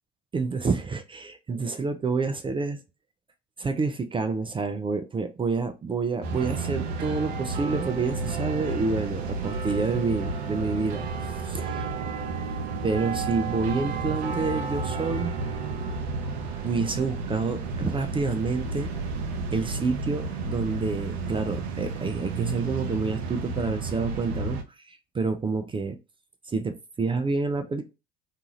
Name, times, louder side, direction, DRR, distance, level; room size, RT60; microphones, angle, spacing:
voice 1, 0.3-2.8 3.6-11.1 11.4-11.6 12.8-15.3 16.6-18.9 19.5-24.6 24.8-26.0 26.5-27.8, right 4 dB, 15° right, 0.4 m, -28 dB
sound 1, 6.2-24.6, right 4 dB, 80° right, 0.6 m, -31 dB
2.7 x 2.4 x 2.8 m
hypercardioid pair, 65°, 31 cm